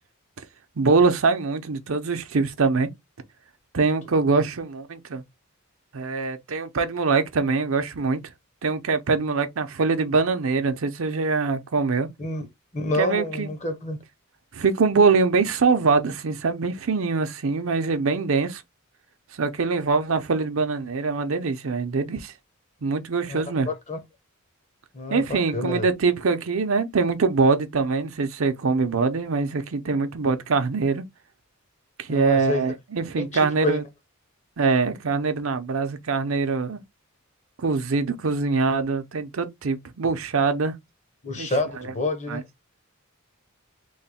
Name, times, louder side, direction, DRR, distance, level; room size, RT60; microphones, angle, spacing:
voice 1, 0.8-2.9 3.7-5.2 5.9-8.2 8.6-12.1 12.9-13.5 14.5-18.6 19.4-22.3 22.8-23.7 25.1-31.0 32.0-33.8 34.6-36.8 37.6-40.7 41.4-41.5 41.8-41.9 42.3-42.4, right 4 dB, 70° right, 0.6 m, -23 dB
voice 2, 12.7-14.0 23.3-24.0 24.9-25.9 32.1-32.7 33.2-33.8 41.2-42.6, left 2 dB, 35° left, 0.8 m, -28 dB
3.1 x 2.2 x 4.1 m
head